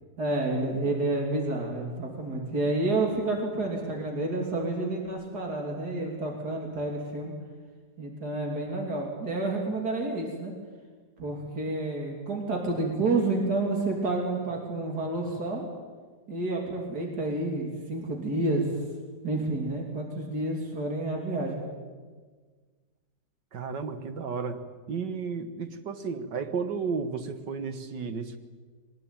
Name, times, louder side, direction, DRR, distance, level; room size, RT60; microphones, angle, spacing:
voice 1, 0.2-7.3 8.0-10.5 11.2-15.7 16.3-18.7 19.2-21.7, right 2 dB, 65° right, 1 dB, 3.7 m, -29 dB
voice 2, 23.5-24.6 24.9-28.4, right 5 dB, 80° right, 9 dB, 2.1 m, -33 dB
22.5 x 19.5 x 9.0 m, 1.5 s
omnidirectional pair, 1.9 m